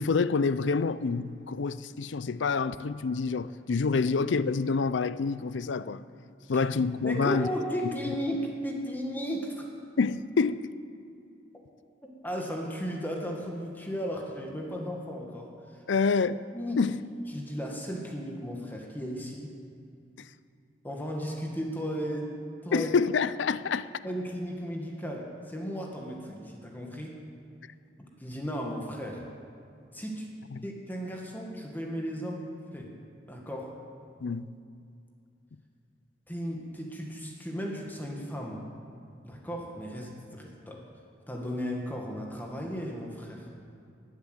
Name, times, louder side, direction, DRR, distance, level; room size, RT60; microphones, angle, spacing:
voice 1, 0.0-6.0 6.5-7.5 10.0-10.6 15.9-16.4 16.8-17.0 22.7-23.9 30.5-30.6 34.2-34.5, left 4 dB, 75° left, 0.5 m, -27 dB
voice 2, 7.0-9.7 12.0-15.8 16.5-16.9 17.3-19.5 20.8-22.3 22.6-22.9 24.0-27.2 28.0-29.3 29.9-30.3 30.6-32.9 33.2-33.8 36.3-38.6 39.2-40.9 41.3-43.5, equal, 10° left, 1.6 m, -35 dB
19.5 x 8.3 x 8.0 m
head